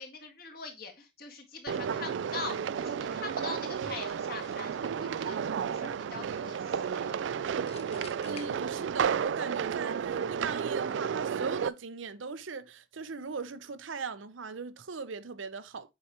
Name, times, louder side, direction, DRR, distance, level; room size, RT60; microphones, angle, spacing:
voice 1, 0.0-7.2, left 4 dB, 50° left, 1.7 m, -43 dB
sound 1, 1.7-11.7, right 7 dB, 70° right, 0.3 m, -32 dB
sound 2, 4.3-4.8 7.6-9.2, left 7 dB, 30° left, 0.6 m, -51 dB
voice 2, 8.2-15.9, right 4 dB, 90° right, 0.7 m, -39 dB
7.5 x 4.7 x 2.9 m
head